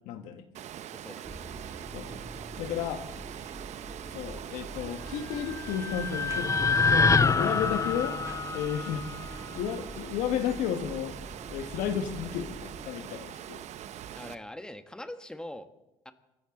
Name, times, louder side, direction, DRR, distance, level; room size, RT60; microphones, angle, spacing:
voice 1, 0.0-0.4 1.9-2.1 2.6-3.0 4.1-8.2 8.5-9.0 9.5-11.2 11.5-13.6, left 9 dB, 80° left, 7 dB, 1.6 m, -33 dB
Water, 0.5-14.3, right 10 dB, 60° right, 0.8 m, -43 dB
voice 2, 0.9-1.4 14.1-15.7 16.0-16.1, left 1 dB, 5° left, 8 dB, 1.4 m, -42 dB
sound 1, 1.2-12.9, right 2 dB, 25° right, 2.2 m, -45 dB
sound 2, 5.3-9.6, left 4 dB, 25° left, 0.6 m, -26 dB
27.5 x 13.0 x 3.9 m, 0.96 s
supercardioid pair, 75°, 13 cm